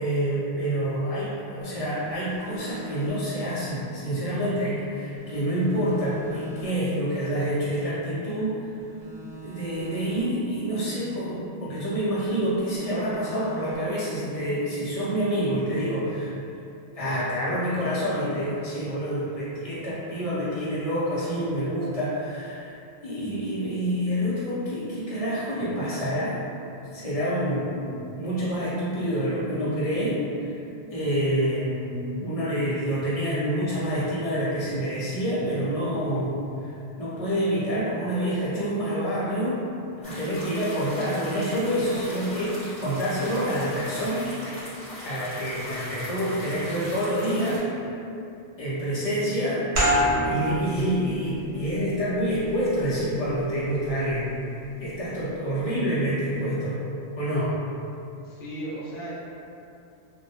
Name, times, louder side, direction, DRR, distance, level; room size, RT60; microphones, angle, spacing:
voice 1, 0.0-8.7 9.4-16.3 16.9-22.7 23.0-26.4 26.9-30.5 30.9-39.6 40.0-44.3 45.0-47.9 48.6-49.7 50.2-54.3 54.8-56.8 57.1-57.6, equal, 40° left, -9 dB, 0.7 m, -27 dB
sound 1, 1.6-4.9 5.2-8.4 8.8-12.0 12.3-15.5, right 1 dB, 55° right, 0.6 m, -43 dB
sound 2, 40.0-47.6, equal, 5° left, 1.0 m, -39 dB
voice 2, 47.3-47.8 55.4-55.9 58.2-59.1, right 1 dB, 70° left, -8 dB, 0.9 m, -38 dB
sound 3, 49.7-55.0, equal, 85° right, 1.0 m, -29 dB
2.3 x 2.2 x 2.7 m, 2.6 s
omnidirectional pair, 1.1 m